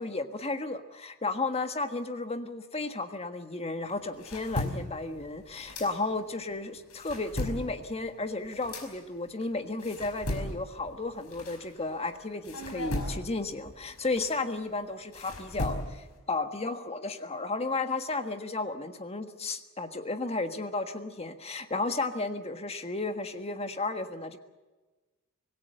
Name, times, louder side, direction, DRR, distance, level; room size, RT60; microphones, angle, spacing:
voice 1, 0.0-24.4, left 3 dB, 30° left, 8 dB, 1.5 m, -33 dB
sound 1, 3.9-6.4 6.8-12.1 12.4-16.2, left 1 dB, 85° left, 5.3 m, -38 dB
25.5 x 17.5 x 7.7 m, 1.2 s
head